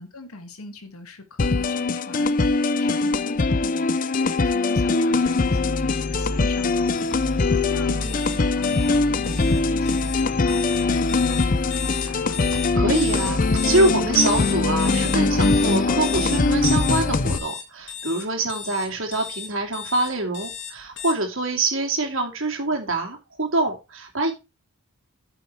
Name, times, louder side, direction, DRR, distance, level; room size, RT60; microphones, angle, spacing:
voice 1, 0.0-12.3, left 2 dB, 80° left, 1.9 m, -41 dB
sound 1, 1.4-17.4, left 3 dB, 40° left, 0.5 m, -22 dB
sound 2, 5.5-17.4, left 1 dB, 5° left, 2.4 m, -31 dB
sound 3, 8.0-21.1, left 8 dB, 55° left, 1.8 m, -34 dB
voice 2, 12.5-24.3, right 2 dB, 60° right, 2.7 m, -25 dB
8.9 x 6.3 x 4.6 m
head